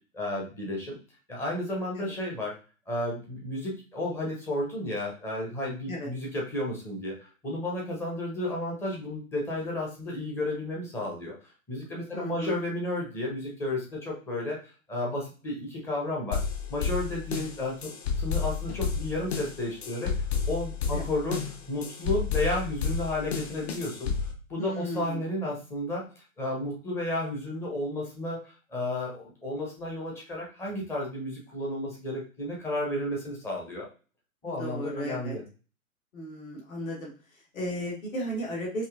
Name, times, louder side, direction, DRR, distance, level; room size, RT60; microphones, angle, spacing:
voice 1, 0.1-0.9 1.3-2.5 2.9-11.3 11.7-14.6 14.9-16.4 16.7-17.9 18.2-20.1 20.5-21.4 21.7-24.1 24.5-28.4 28.7-33.9 34.4-35.4, left 1 dB, 5° left, -2 dB, 0.5 m, -32 dB
voice 2, 12.1-12.6 20.9-21.1 24.6-25.2 34.4-35.4 36.1-38.9, equal, 65° left, -2 dB, 1.5 m, -35 dB
sound 1, 16.3-24.3, left 6 dB, 45° left, 0.9 m, -31 dB
4.9 x 2.7 x 2.4 m, 0.36 s
figure-of-eight pair, 120°, 43 cm